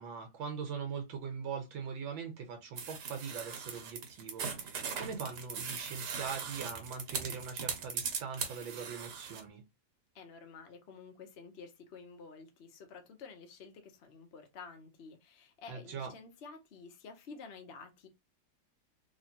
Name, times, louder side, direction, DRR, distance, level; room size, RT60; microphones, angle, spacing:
voice 1, 0.0-9.6 15.7-16.1, right 6 dB, 80° right, 1.5 m, -41 dB
sound 1, 2.8-9.4, right 6 dB, 60° right, 1.3 m, -39 dB
voice 2, 10.1-18.1, left 5 dB, 70° left, 0.6 m, -51 dB
3.2 x 3.0 x 2.8 m
omnidirectional pair, 2.2 m